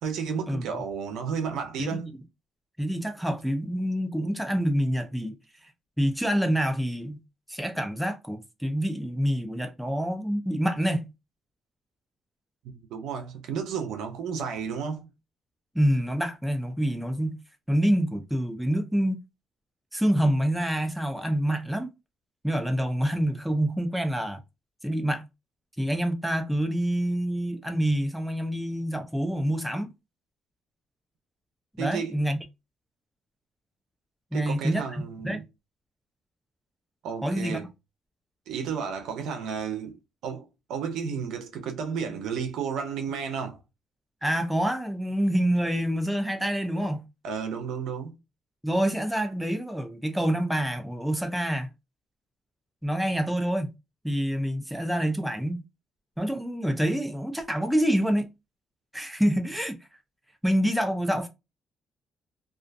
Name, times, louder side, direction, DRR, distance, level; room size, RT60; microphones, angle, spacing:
voice 1, 0.0-2.2 12.6-15.1 31.8-32.2 34.3-35.4 37.0-37.7 38.5-43.6 47.2-48.2, right 6 dB, 85° right, 0.6 m, -32 dB
voice 2, 2.8-5.4 6.0-7.2 7.5-11.1 15.7-17.4 17.7-19.2 19.9-21.9 22.4-24.4 24.8-25.2 25.8-29.9 31.8-32.4 34.3-35.4 37.2-37.7 44.2-47.1 48.6-51.7 52.8-53.7 54.0-55.6 56.2-58.3 58.9-59.8 60.4-61.3, equal, ahead, 0.5 m, -27 dB
2.5 x 2.4 x 2.2 m
cardioid pair, 90°, 0 cm